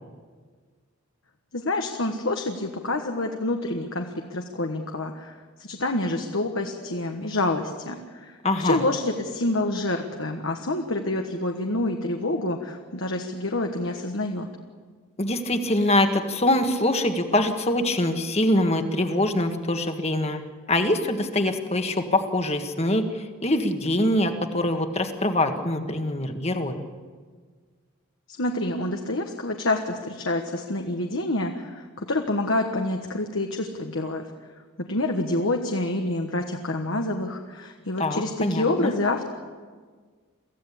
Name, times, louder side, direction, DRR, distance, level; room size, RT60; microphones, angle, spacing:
voice 1, 1.5-14.5 28.3-34.2 34.8-39.3, left 2 dB, 65° left, 4 dB, 1.4 m, -27 dB
voice 2, 8.4-8.8 15.2-20.4 20.7-26.8 38.0-38.9, left 1 dB, 30° left, 6 dB, 1.6 m, -24 dB
24.0 x 15.5 x 8.6 m, 1.5 s
head